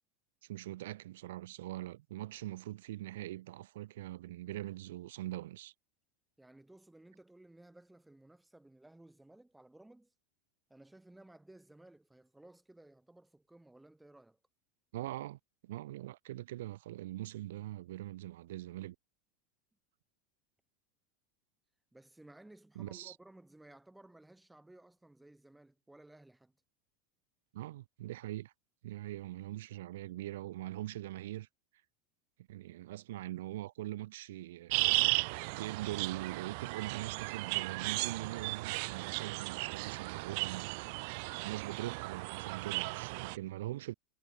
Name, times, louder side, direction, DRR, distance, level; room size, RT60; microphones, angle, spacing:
voice 1, 0.4-5.7 14.9-19.0 22.8-23.2 27.5-28.5 28.8-31.5 32.5-43.9, right 15 dB, 85° right, 2.1 m, -42 dB
voice 2, 6.4-10.1 10.7-14.4 21.9-26.6, right 1 dB, 5° right, 6.5 m, -58 dB
sound 1, 34.7-43.4, right 31 dB, 60° right, 0.8 m, -35 dB
supercardioid pair, 150°, 0 cm